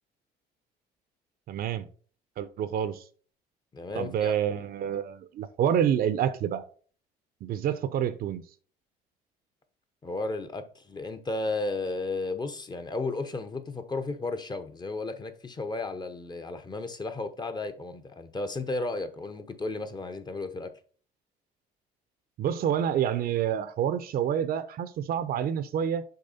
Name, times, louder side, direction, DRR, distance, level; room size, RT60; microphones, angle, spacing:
voice 1, 1.5-1.9 2.4-3.0 3.9-6.6 7.4-8.4 22.4-26.0, right 9 dB, 60° right, 0.8 m, -28 dB
voice 2, 3.7-4.3 10.0-20.7, left 3 dB, 25° left, 1.0 m, -34 dB
6.7 x 4.8 x 4.2 m
cardioid pair, 110°, 17 cm